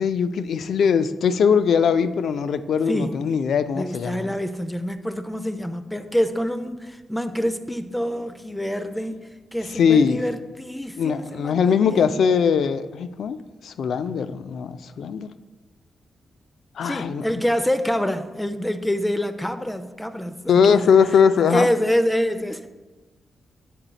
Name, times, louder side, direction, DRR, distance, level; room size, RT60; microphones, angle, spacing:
voice 1, 0.0-4.3 9.7-10.2 11.0-13.4 13.6-15.3 16.8-17.2 20.5-21.7, left 6 dB, 75° left, 12 dB, 0.3 m, -20 dB
voice 2, 2.9-3.3 3.7-12.1 16.8-20.9 21.5-22.7, equal, 5° left, 9 dB, 0.4 m, -26 dB
7.6 x 4.0 x 3.9 m, 1.2 s
cardioid pair, 75°, 0 cm